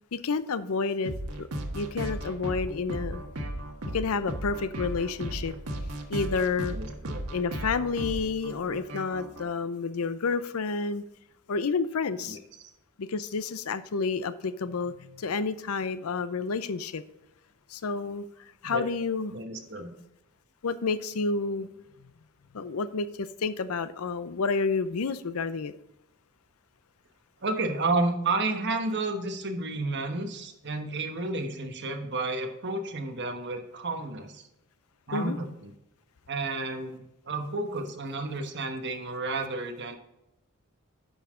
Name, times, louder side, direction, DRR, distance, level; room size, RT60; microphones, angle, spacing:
voice 1, 0.1-1.5 1.7-3.2 3.9-5.5 6.1-6.8 7.3-11.0 11.5-12.4 13.0-17.0 17.7-18.2 18.6-19.3 20.6-21.7 22.5-25.7 35.1-35.4, left 4 dB, 70° left, 14 dB, 0.6 m, -30 dB
sound 1, 1.0-9.4, right 1 dB, 90° right, 1.4 m, -36 dB
voice 2, 6.7-7.2 12.2-12.4 18.6-18.8 19.3-19.9 27.4-34.4 35.1-35.7 36.3-40.0, right 2 dB, 50° right, 5 dB, 1.2 m, -31 dB
10.0 x 5.7 x 3.7 m, 0.90 s
head